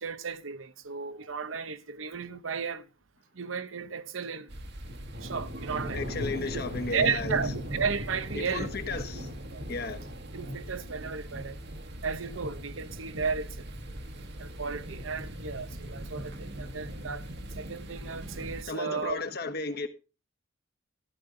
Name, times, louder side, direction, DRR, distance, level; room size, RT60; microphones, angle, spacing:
voice 1, 0.0-2.8 3.4-4.5 5.2-6.0 6.5-6.6 6.9-8.7 9.5-9.6 10.3-11.6 12.0-13.6 14.4-17.2 17.6-19.2, right 5 dB, 85° right, 0.9 m, -34 dB
sound 1, 4.5-18.6, equal, 60° right, 1.6 m, -39 dB
voice 2, 5.9-7.4 8.3-9.4 9.7-10.0 18.6-19.9, left 3 dB, 55° left, 1.4 m, -34 dB
14.5 x 9.8 x 3.9 m
head